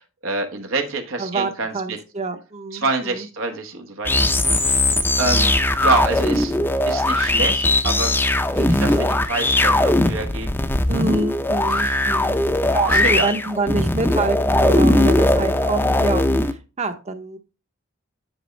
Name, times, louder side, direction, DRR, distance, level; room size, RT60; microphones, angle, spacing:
voice 1, 0.2-2.0 2.7-4.1 4.4-4.8 5.2-5.5 5.8-6.5 6.9-8.1 8.5-10.5 11.7-12.1 12.9-13.3, right 3 dB, 80° right, 4 dB, 1.3 m, -27 dB
voice 2, 1.2-3.2 8.9-9.2 10.9-12.3 12.7-17.4, right 3 dB, 35° right, 9 dB, 0.8 m, -26 dB
sound 1, 4.0-16.5, left 1 dB, 10° left, 0.5 m, -19 dB
9.7 x 5.2 x 3.2 m, 0.31 s
head